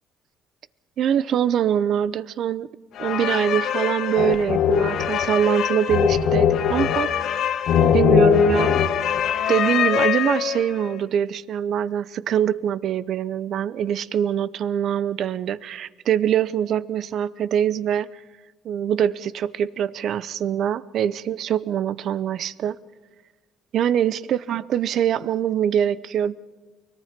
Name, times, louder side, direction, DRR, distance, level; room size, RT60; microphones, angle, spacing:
voice 1, 1.0-2.7 3.0-7.5 7.8-8.8 9.5-18.1 18.6-22.8 23.7-26.4, right 9 dB, 60° right, 19 dB, 0.7 m, -23 dB
sound 1, 3.0-10.8, left 9 dB, 65° left, 1.5 m, -21 dB
24.0 x 18.5 x 6.0 m, 1.2 s
cardioid pair, 100°, 0 cm